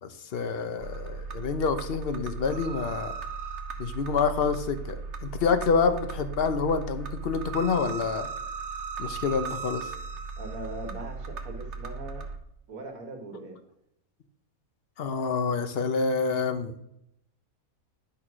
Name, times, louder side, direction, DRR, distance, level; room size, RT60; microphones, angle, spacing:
voice 1, 0.0-3.2 3.8-8.3 9.0-9.9 15.0-16.8, left 5 dB, 50° left, 8 dB, 0.9 m, -27 dB
sound 1, 0.8-12.4, right 5 dB, 55° right, 1.1 m, -37 dB
voice 2, 10.4-12.3 12.7-13.6, right 2 dB, 75° right, 3 dB, 1.8 m, -40 dB
10.0 x 3.7 x 6.2 m, 0.77 s
omnidirectional pair, 1.5 m